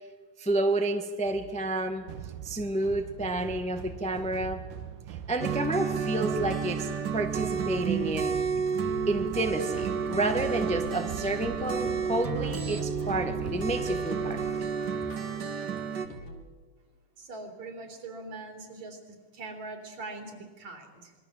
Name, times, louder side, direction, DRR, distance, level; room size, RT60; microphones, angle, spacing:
voice 1, 0.4-2.1 2.4-4.6 5.1-8.3 9.1-14.5, right 1 dB, 5° left, 5 dB, 0.5 m, -30 dB
sound 1, 1.3-14.9, right 9 dB, 80° right, 2.6 m, -42 dB
sound 2, 5.4-16.1, right 6 dB, 40° right, 1.7 m, -31 dB
sound 3, 8.8-16.4, left 1 dB, 75° left, 4.5 m, -45 dB
voice 2, 17.2-21.1, right 3 dB, 60° right, 3 dB, 4.6 m, -42 dB
26.0 x 22.0 x 7.5 m, 1.4 s
omnidirectional pair, 3.6 m